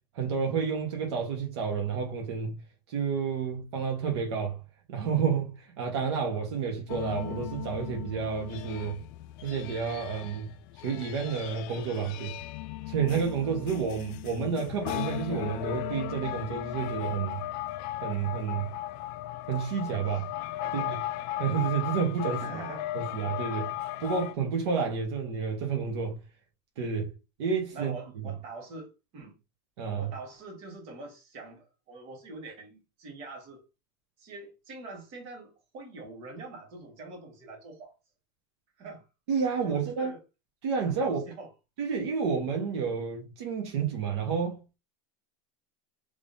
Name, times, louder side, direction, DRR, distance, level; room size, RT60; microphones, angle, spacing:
voice 1, 0.1-2.6 2.9-4.6 4.9-9.0 9.4-10.5 10.8-12.4 12.9-17.4 18.0-18.7 19.5-20.3 20.7-20.9 21.4-22.4 22.9-23.7 24.0-26.2 26.8-27.1 27.4-27.9 29.8-30.1 39.3-40.1 40.6-41.2 41.8-44.6, right 6 dB, 70° right, 1.2 m, -30 dB
sound 1, 6.9-24.3, left 14 dB, 50° left, 0.4 m, -37 dB
voice 2, 20.6-21.0 22.3-23.0 27.7-29.4 29.9-33.6 34.2-38.0 38.8-39.1 39.6-40.2 41.0-41.5, right 3 dB, 45° right, 1.5 m, -44 dB
3.5 x 3.4 x 2.6 m
supercardioid pair, 155°, 14 cm